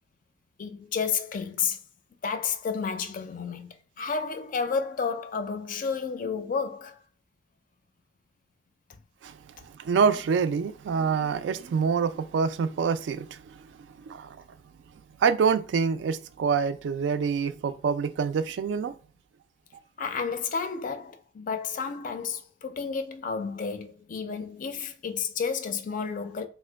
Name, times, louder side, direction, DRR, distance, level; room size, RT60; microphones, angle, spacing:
voice 1, 0.6-1.8 2.2-7.0 20.0-26.5, left 5 dB, 50° left, 0.4 m, -31 dB
voice 2, 9.8-13.7 14.0-14.4 15.2-19.0, right 6 dB, 85° right, 0.3 m, -26 dB
2.8 x 2.1 x 3.3 m
head